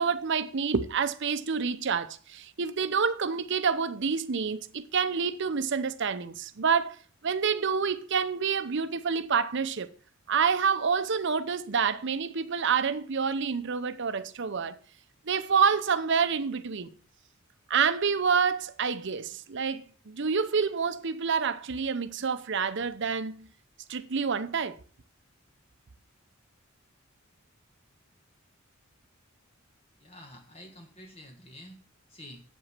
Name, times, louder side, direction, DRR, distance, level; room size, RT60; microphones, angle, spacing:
voice 1, 0.0-7.0 7.2-9.9 10.3-14.8 15.3-16.9 17.7-23.5 23.9-24.8, right 6 dB, 55° right, 0.7 m, -28 dB
voice 2, 30.0-31.8 32.1-32.4, left 1 dB, 30° left, 1.6 m, -48 dB
8.4 x 8.0 x 6.0 m
head